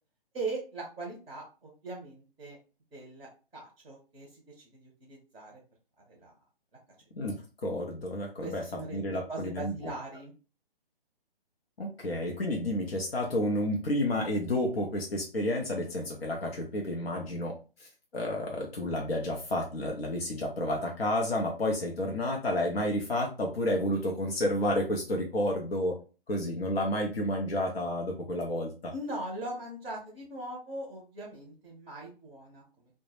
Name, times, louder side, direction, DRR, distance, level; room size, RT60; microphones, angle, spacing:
voice 1, 0.3-2.6 2.9-5.6 6.1-6.3 8.4-10.3 28.9-32.9, right 2 dB, ahead, -19 dB, 0.3 m, -40 dB
voice 2, 7.6-9.9 11.8-26.0 26.3-28.9, left 1 dB, 90° left, 0 dB, 0.7 m, -31 dB
2.2 x 2.0 x 3.1 m, 0.33 s
hypercardioid pair, 145°, 29 cm